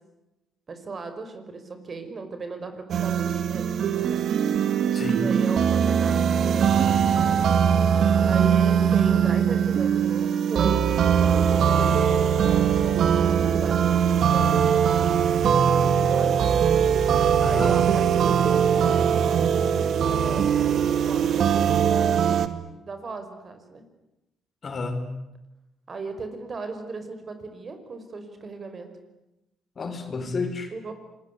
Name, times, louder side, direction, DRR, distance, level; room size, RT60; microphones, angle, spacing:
voice 1, 0.7-4.2 5.1-7.3 8.2-14.6 16.1-16.3 17.4-22.3 22.9-23.8 25.9-28.9 30.7-30.9, right 3 dB, 40° right, 8 dB, 5.3 m, -37 dB
sound 1, 2.9-22.5, right 8 dB, 65° right, 2.0 m, -21 dB
voice 2, 4.9-5.2 17.4-17.8 24.6-25.1 29.7-30.7, left 3 dB, 40° left, 7 dB, 4.9 m, -30 dB
26.5 x 21.0 x 10.0 m, 0.94 s
cardioid pair, 90°, 0 cm